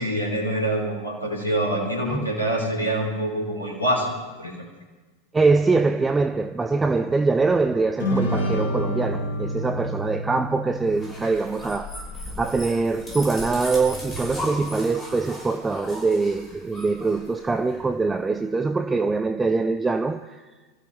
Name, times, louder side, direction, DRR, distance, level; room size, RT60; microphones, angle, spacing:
voice 1, 0.0-4.7, right 1 dB, 80° left, 3.5 m, -26 dB
voice 2, 5.3-12.0 12.4-20.4, right 3 dB, 10° right, 0.5 m, -23 dB
sound 1, 8.0-11.6, equal, 60° left, 2.9 m, -28 dB
sound 2, 10.9-17.8, left 1 dB, 20° left, 6.2 m, -37 dB
27.0 x 15.0 x 3.3 m
figure-of-eight pair, 90°, 0 cm